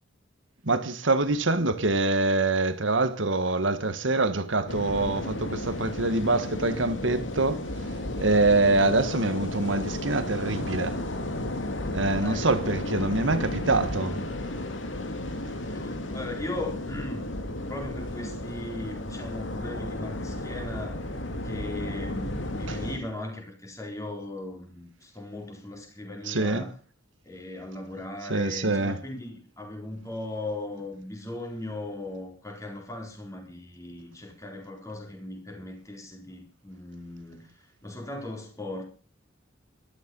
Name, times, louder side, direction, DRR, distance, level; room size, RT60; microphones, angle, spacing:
voice 1, 0.6-7.6 8.2-11.0 11.9-14.2 22.7-22.8 26.2-26.6 28.3-29.0, right 2 dB, 80° right, 1.7 m, -25 dB
sound 1, 4.7-23.0, left 1 dB, 80° left, 2.3 m, -33 dB
voice 2, 15.7-17.3 17.7-21.1 21.4-26.7 27.2-38.8, left 2 dB, 15° left, 4.3 m, -38 dB
13.5 x 13.0 x 5.5 m
head